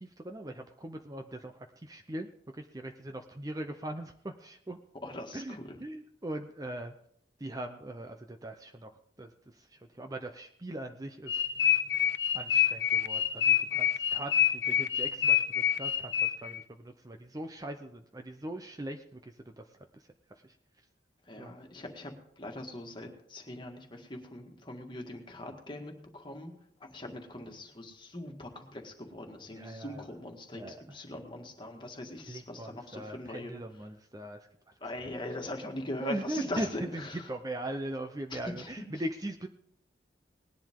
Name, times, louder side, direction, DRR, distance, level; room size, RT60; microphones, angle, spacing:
voice 1, 0.0-1.5 1.8-2.3 2.7-4.8 5.3-6.9 7.4-8.9 9.2-9.3 10.0-11.3 12.3-16.1 16.4-19.0 19.6-19.7 21.4-21.5 29.5-30.0 30.5-30.9 32.3-34.4 36.0-39.5, right 1 dB, 20° right, 5 dB, 0.7 m, -40 dB
voice 2, 5.0-5.8 21.3-22.1 22.4-26.5 26.9-33.6 34.8-37.3 38.3-38.7, left 1 dB, 25° left, 3 dB, 1.9 m, -41 dB
sound 1, 11.3-16.6, left 9 dB, 70° left, 0.6 m, -27 dB
19.0 x 10.5 x 3.7 m, 0.68 s
head